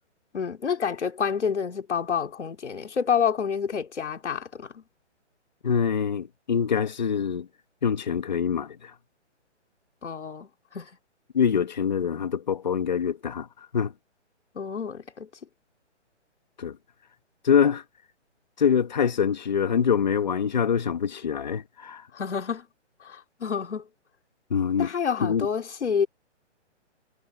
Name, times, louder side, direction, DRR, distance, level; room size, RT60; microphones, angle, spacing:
voice 1, 0.3-4.8 10.0-10.9 14.5-15.3 22.1-22.7 23.0-23.9 24.8-26.1, left 7 dB, 70° left, 3.2 m, -28 dB
voice 2, 5.6-7.5 7.8-8.9 11.3-13.5 13.7-13.9 16.6-16.8 17.4-17.8 18.6-22.0 24.5-24.9 25.2-25.5, left 7 dB, 35° left, 1.9 m, -24 dB
hypercardioid pair, 180°, 36 cm